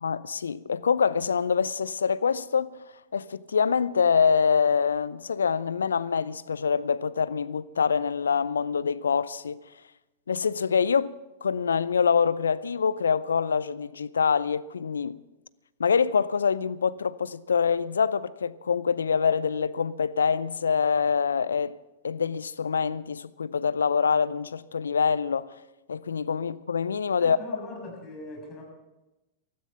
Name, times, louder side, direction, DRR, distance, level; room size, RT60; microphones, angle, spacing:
voice 1, 0.0-2.8 3.1-9.6 10.3-11.1 11.4-15.1 15.8-21.8 22.0-25.5 25.9-27.4, left 6 dB, 80° left, 0.5 m, -25 dB
voice 2, 27.2-28.6, left 2 dB, 30° left, 6.9 m, -40 dB
16.0 x 13.5 x 5.8 m
figure-of-eight pair, 100°, 0 cm